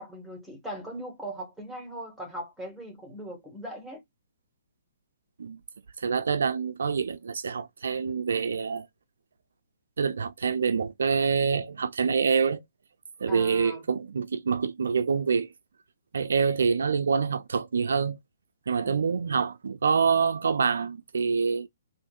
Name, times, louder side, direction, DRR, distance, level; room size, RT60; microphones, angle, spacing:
voice 1, 0.0-4.0 13.3-13.9, right 1 dB, ahead, 1.6 m, -39 dB
voice 2, 6.0-8.9 10.0-12.6 13.2-15.5 16.1-18.2 18.7-21.7, right 5 dB, 75° right, 0.4 m, -26 dB
3.5 x 2.5 x 2.4 m
hypercardioid pair, 145°, 0 cm